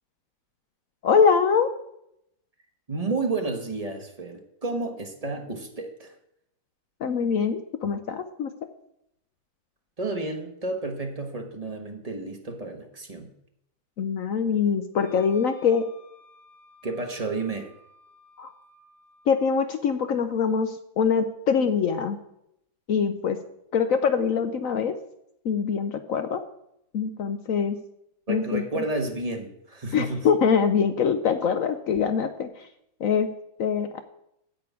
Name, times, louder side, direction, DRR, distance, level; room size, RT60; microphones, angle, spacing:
voice 1, 1.0-1.7 7.0-8.5 14.0-15.9 18.4-18.5 19.3-22.2 22.9-23.4 23.7-25.0 25.4-26.4 26.9-27.8 28.3-28.8 29.9-32.7 33.0-33.3 33.6-34.0, left 6 dB, 65° left, 9 dB, 0.8 m, -24 dB
voice 2, 2.9-6.1 10.0-13.3 16.8-17.7 28.3-30.3, right 3 dB, 20° right, 3 dB, 1.2 m, -31 dB
Wind instrument woodwind instrument, 14.9-19.4, left 1 dB, ahead, 4.6 m, -55 dB
8.9 x 5.9 x 8.3 m, 0.77 s
omnidirectional pair, 2.0 m